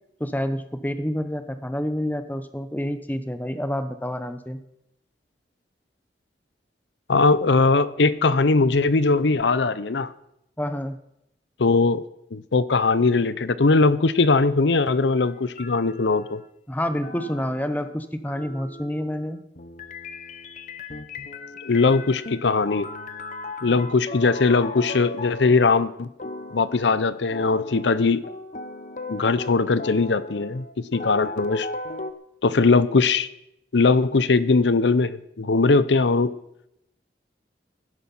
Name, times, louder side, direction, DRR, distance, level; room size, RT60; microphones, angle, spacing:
voice 1, 0.2-4.6 10.6-11.0 16.7-19.4, equal, 10° left, 10 dB, 0.8 m, -28 dB
voice 2, 7.1-10.1 11.6-12.0 12.3-16.4 21.6-22.9 23.6-26.1 26.5-28.2 29.1-30.7 30.9-31.7 32.4-33.3 33.7-36.3, left 3 dB, 85° left, 15 dB, 0.7 m, -20 dB
sound 1, 15.2-16.4 17.0-32.1, left 2 dB, 45° left, 0.9 m, -37 dB
17.5 x 10.5 x 5.6 m, 0.81 s
head